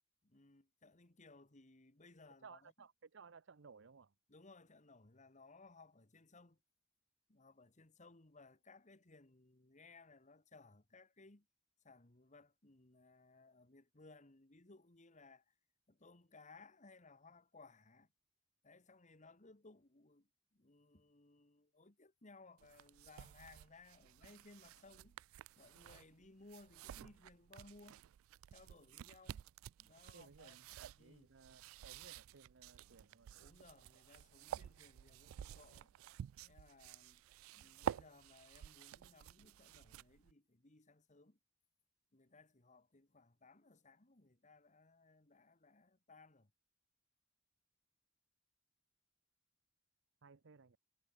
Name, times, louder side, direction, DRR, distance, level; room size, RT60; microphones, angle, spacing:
voice 1, 0.2-2.7 4.3-6.6 7.3-11.5 11.8-15.5 15.9-18.1 18.6-25.2 25.6-28.0 28.5-29.5 29.8-30.6 31.0-31.3 33.4-35.9 36.4-37.2 37.5-41.4 42.1-46.5, left 3 dB, 35° left, 1.8 m, -62 dB
voice 2, 2.4-4.1 30.1-33.4 50.2-50.8, right 5 dB, 65° right, 0.7 m, -60 dB
sound 1, 22.6-40.3, right 9 dB, 85° right, 0.3 m, -51 dB
head